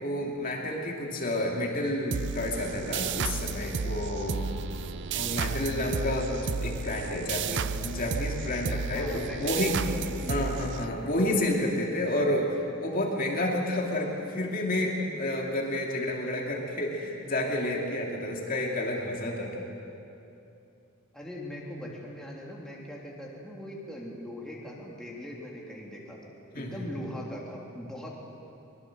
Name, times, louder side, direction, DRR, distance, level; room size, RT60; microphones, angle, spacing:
voice 1, 0.0-4.6 5.1-9.8 10.3-19.6 26.5-26.9, left 1 dB, 40° left, -1 dB, 2.6 m, -30 dB
voice 2, 1.1-1.4 8.9-10.7 21.1-28.1, equal, 5° left, -4 dB, 3.1 m, -41 dB
sound 1, 2.1-11.3, right 5 dB, 55° right, 0.6 m, -33 dB
23.0 x 21.5 x 7.8 m, 2.7 s
head